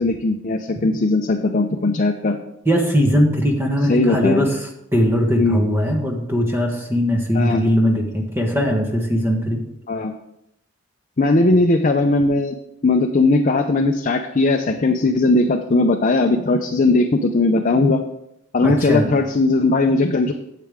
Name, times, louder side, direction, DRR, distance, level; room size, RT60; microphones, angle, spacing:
voice 1, 0.0-2.4 3.9-4.5 5.4-5.6 7.3-7.6 9.9-10.1 11.2-12.5 12.8-18.0 18.5-20.3, left 2 dB, 40° left, 4 dB, 0.5 m, -18 dB
voice 2, 2.7-4.5 4.9-9.6 18.6-19.1, equal, 10° right, 1 dB, 1.3 m, -19 dB
9.1 x 7.6 x 3.6 m, 0.81 s
head